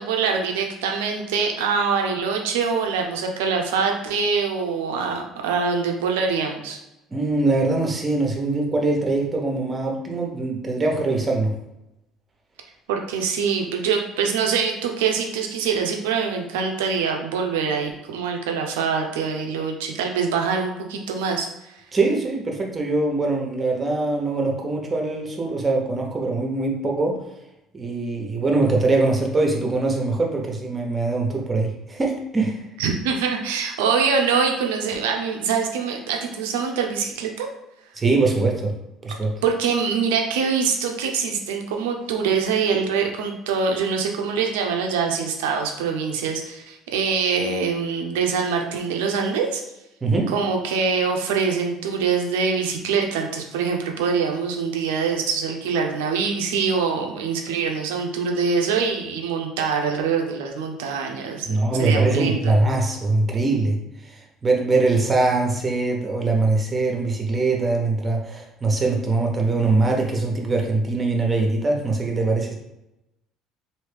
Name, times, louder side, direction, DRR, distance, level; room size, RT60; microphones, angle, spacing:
voice 1, 0.0-6.8 12.9-21.7 32.8-37.5 39.4-49.6 50.3-61.5 61.7-62.4, right 5 dB, 85° right, 2 dB, 0.6 m, -24 dB
voice 2, 7.1-11.5 21.9-27.2 27.7-32.6 38.0-38.7 39.0-39.3 50.0-50.3 61.4-63.8 64.4-72.5, right 3 dB, 30° right, 0 dB, 1.0 m, -22 dB
3.1 x 2.7 x 3.4 m, 0.91 s
hypercardioid pair, 70°, 0 cm